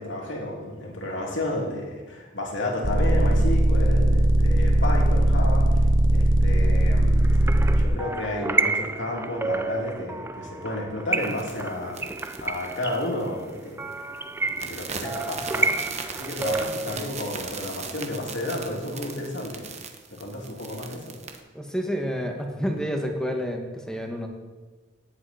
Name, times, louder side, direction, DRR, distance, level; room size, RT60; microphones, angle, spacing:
voice 1, 0.0-5.9 6.1-7.3 7.8-12.1 12.4-14.2 14.5-15.7 16.1-19.6 20.1-21.1, left 1 dB, 70° left, -1 dB, 2.8 m, -32 dB
sound 1, 2.8-7.8, right 1 dB, 75° right, 1.1 m, -19 dB
sound 2, 7.2-17.0, right 3 dB, 10° right, 0.4 m, -30 dB
sound 3, 11.1-13.6 13.9-14.2 14.5-21.4, right 5 dB, 35° right, 1.0 m, -38 dB
voice 2, 21.5-24.3, equal, 5° left, 2 dB, 1.3 m, -29 dB
18.0 x 7.8 x 4.3 m, 1.3 s
head